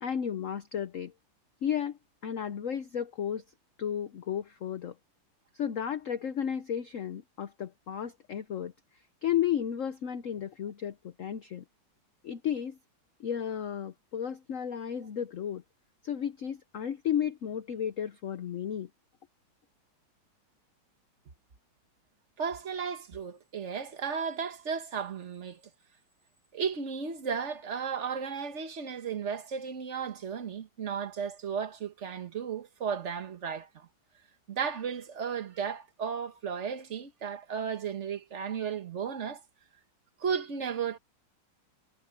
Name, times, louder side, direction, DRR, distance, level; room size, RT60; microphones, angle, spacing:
voice 1, 0.0-1.1 1.6-3.4 3.8-4.9 5.5-8.7 9.2-11.6 12.2-12.8 13.2-15.6 16.0-18.9, left 9 dB, 55° left, 0.9 m, -33 dB
voice 2, 22.4-25.6 26.5-33.9 34.5-39.4 40.2-41.0, right 6 dB, 40° right, 1.4 m, -34 dB
omnidirectional pair, 2.1 m